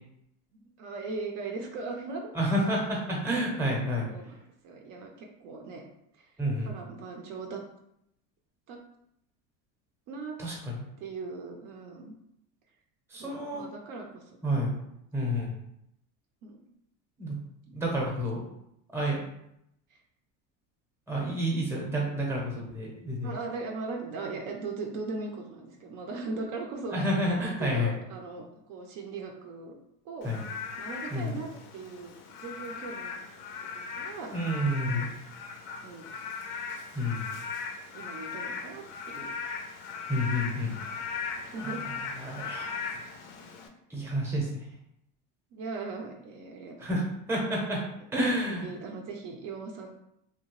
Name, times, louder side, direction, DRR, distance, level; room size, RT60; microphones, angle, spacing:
voice 1, 0.5-2.3 4.0-4.4 4.6-5.8 6.1-6.3 6.6-7.6 8.7-8.8 10.1-10.4 11.0-12.1 13.2-14.8 16.4-16.6 17.9-18.0 23.2-27.0 27.4-29.8 30.0-30.3 30.8-33.1 33.7-34.6 34.9-35.1 35.8-36.1 37.9-39.4 40.1-40.2 41.5-41.8 45.5-46.7 48.5-49.9, right 3 dB, 60° right, 2 dB, 0.5 m, -39 dB
voice 2, 2.3-4.1 6.4-6.7 10.4-10.8 13.1-13.7 14.4-14.7 15.1-15.5 17.2-17.4 17.7-18.4 18.9-19.2 21.1-23.3 26.9-27.9 30.2-30.4 31.1-31.4 34.3-35.1 36.9-37.2 40.1-40.7 41.6-42.8 43.9-44.5 46.8-47.0 47.3-47.8 48.1-48.7, equal, 5° right, -2 dB, 0.7 m, -29 dB
Frog / Rain, 30.2-43.7, left 5 dB, 85° left, 0.5 m, -38 dB
2.8 x 2.1 x 2.9 m, 0.78 s
cardioid pair, 135°, 36 cm